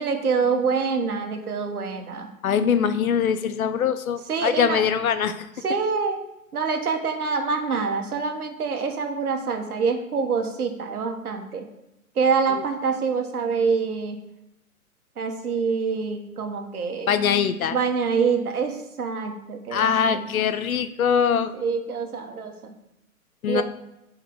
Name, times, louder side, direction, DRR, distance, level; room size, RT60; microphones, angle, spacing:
voice 1, 0.0-2.3 4.3-4.8 5.6-6.2 6.5-11.7 12.1-14.2 15.2-17.1 17.7-20.2 21.5-22.7 23.5-23.6, right 5 dB, 80° right, 5 dB, 1.3 m, -26 dB
voice 2, 2.4-5.3 17.1-17.8 19.7-21.5 23.4-23.6, left 7 dB, 70° left, 11 dB, 0.7 m, -22 dB
6.6 x 4.5 x 3.8 m, 0.89 s
hypercardioid pair, 150°, 44 cm